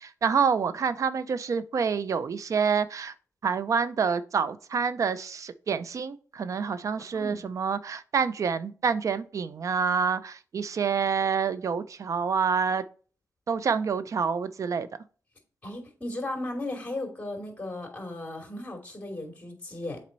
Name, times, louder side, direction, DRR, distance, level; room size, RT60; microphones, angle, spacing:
voice 1, 0.0-3.1 3.4-12.8 13.5-14.9, right 6 dB, 60° right, 0.5 m, -27 dB
voice 2, 15.6-20.0, left 1 dB, 25° left, 2.8 m, -36 dB
7.6 x 4.2 x 4.1 m
cardioid pair, 65°, 6 cm